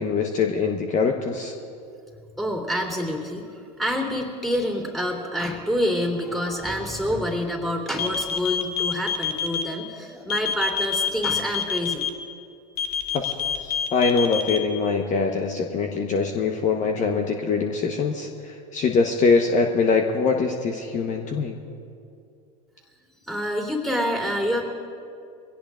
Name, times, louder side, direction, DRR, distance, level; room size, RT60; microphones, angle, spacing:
voice 1, 0.0-1.5 13.1-13.3 13.6-21.6, left 4 dB, 40° left, 3 dB, 1.1 m, -23 dB
voice 2, 2.4-12.0 23.3-24.6, equal, ahead, 1 dB, 3.2 m, -27 dB
sound 1, 8.0-9.6 10.3-12.1 12.8-14.6, left 7 dB, 75° left, 1.3 m, -26 dB
22.5 x 17.0 x 2.5 m, 2.5 s
hypercardioid pair, 80°, 20 cm